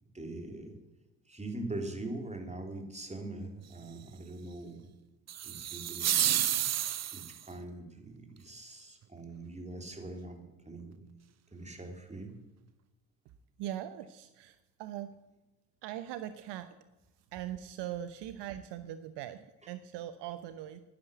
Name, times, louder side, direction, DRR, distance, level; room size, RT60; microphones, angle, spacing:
voice 1, 0.1-0.8 1.3-4.9 5.4-6.2 7.1-11.1 11.5-12.4, right 2 dB, 15° right, 4 dB, 3.4 m, -42 dB
sound 1, 5.3-7.5, right 11 dB, 35° right, 0.7 m, -30 dB
voice 2, 13.6-15.1 15.8-16.8 17.2-20.8, right 12 dB, 65° right, 11 dB, 0.9 m, -41 dB
11.5 x 10.0 x 8.1 m, 1.0 s
hypercardioid pair, 55°, 45 cm